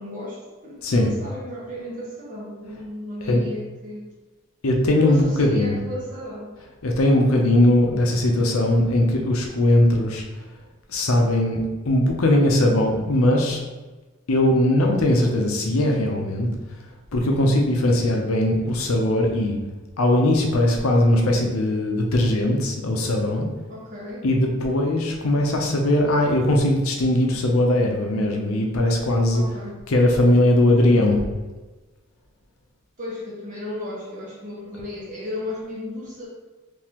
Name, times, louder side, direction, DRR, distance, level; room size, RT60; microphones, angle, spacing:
voice 1, 0.0-4.1 5.0-6.5 23.7-24.3 29.3-29.8 33.0-36.3, left 1 dB, 35° right, -5 dB, 1.1 m, -34 dB
voice 2, 4.6-5.8 6.8-10.2 10.9-11.6 11.8-13.6 14.3-16.5 17.1-19.6 20.0-23.5 24.2-29.4 29.9-31.2, left 1 dB, 75° left, 1 dB, 0.6 m, -19 dB
3.7 x 2.8 x 2.9 m, 1.2 s
head